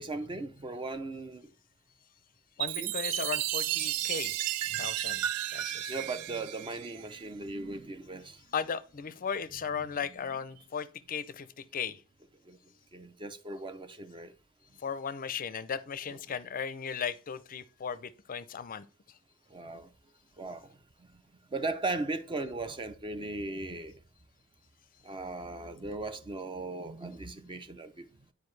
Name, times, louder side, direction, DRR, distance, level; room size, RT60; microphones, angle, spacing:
voice 1, 0.0-1.5 2.8-2.9 4.7-4.9 5.9-8.4 12.5-12.6 12.9-14.3 16.1-16.2 19.5-19.9 20.4-20.8 21.5-24.0 25.0-28.1, right 2 dB, 20° right, 0.4 m, -38 dB
voice 2, 2.6-4.4 4.8-5.3 5.5-5.9 8.5-12.0 14.8-19.2, left 7 dB, 40° left, 0.5 m, -36 dB
Chime, 2.6-7.3, right 13 dB, 90° right, 0.3 m, -33 dB
10.5 x 4.7 x 3.2 m
head